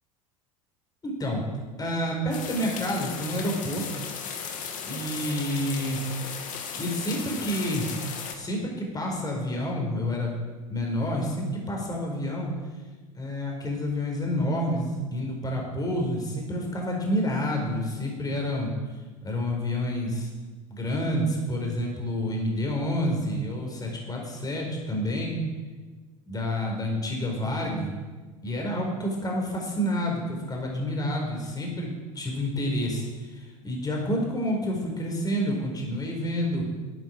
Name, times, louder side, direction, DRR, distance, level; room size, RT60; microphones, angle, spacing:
voice 1, 1.0-1.5 1.8-3.9 4.9-6.0 6.8-7.9 8.3-10.3 10.7-12.5 13.1-18.7 19.2-20.3 20.7-25.3 26.3-28.0 28.4-36.6, equal, 20° left, 0 dB, 4.5 m, -29 dB
sound 1, 2.3-8.3, left 6 dB, 50° left, 2.2 m, -36 dB
12.0 x 9.1 x 7.4 m, 1.3 s
figure-of-eight pair, 75°, 18 cm